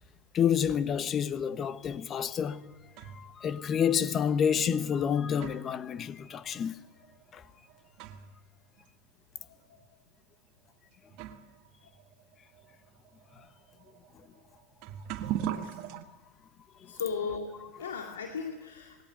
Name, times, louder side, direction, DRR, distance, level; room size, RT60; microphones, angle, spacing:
voice 1, 0.3-2.6 3.0-6.8 7.3-7.4, left 8 dB, 35° left, 1.1 m, -29 dB
sound 1, 2.3-3.4 4.3-4.4 5.0-8.5 8.8-8.9 9.7-9.8 10.7-10.8 11.1-16.0, right 10 dB, 55° right, 1.6 m, -41 dB
voice 2, 15.4-15.8 16.9-19.0, left 5 dB, 90° left, 2.2 m, -37 dB
20.0 x 17.0 x 9.0 m
hypercardioid pair, 100°, 0 cm